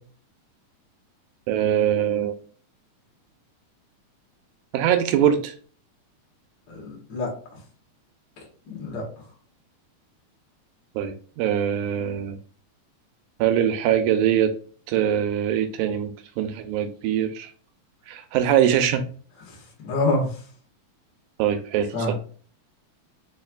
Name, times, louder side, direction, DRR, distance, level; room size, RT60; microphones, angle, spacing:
voice 1, 1.5-2.3 4.7-5.5 11.0-12.4 13.4-14.5 14.9-17.5 18.1-19.0 21.4-22.1, right 10 dB, 85° right, 7 dB, 2.0 m, -22 dB
voice 2, 6.7-7.6 8.7-9.0 19.5-20.4 21.9-22.1, left 2 dB, 50° left, -2 dB, 1.6 m, -27 dB
4.7 x 3.2 x 2.3 m, 0.43 s
omnidirectional pair, 3.4 m